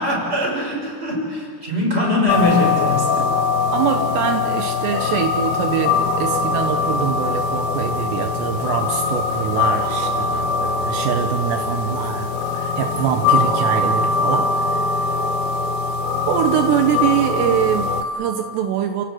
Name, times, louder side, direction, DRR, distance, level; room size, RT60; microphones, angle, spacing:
voice 1, 0.0-3.1, left 1 dB, 15° right, -1 dB, 6.6 m, -21 dB
sound 1, 2.3-18.0, left 4 dB, 65° left, 3.1 m, -22 dB
voice 2, 3.7-15.2 16.3-19.1, right 9 dB, 80° right, 6 dB, 3.2 m, -24 dB
30.0 x 18.0 x 8.0 m, 2.1 s
omnidirectional pair, 5.0 m